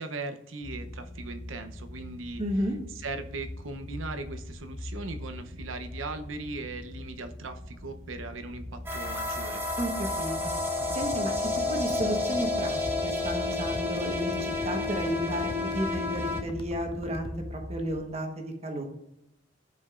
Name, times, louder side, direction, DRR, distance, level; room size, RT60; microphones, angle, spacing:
voice 1, 0.0-2.4 3.0-9.6, right 3 dB, 85° right, 7 dB, 0.8 m, -39 dB
sound 1, 0.6-18.0, left 1 dB, 55° left, 2.1 m, -43 dB
voice 2, 2.4-2.8 9.8-10.5 10.9-11.4 11.7-18.9, right 1 dB, 35° right, 3 dB, 1.2 m, -32 dB
sound 2, 8.9-16.4, left 3 dB, 10° right, 0.9 m, -30 dB
sound 3, 10.4-17.4, left 1 dB, 25° left, 0.4 m, -43 dB
12.0 x 5.1 x 2.5 m, 0.81 s
head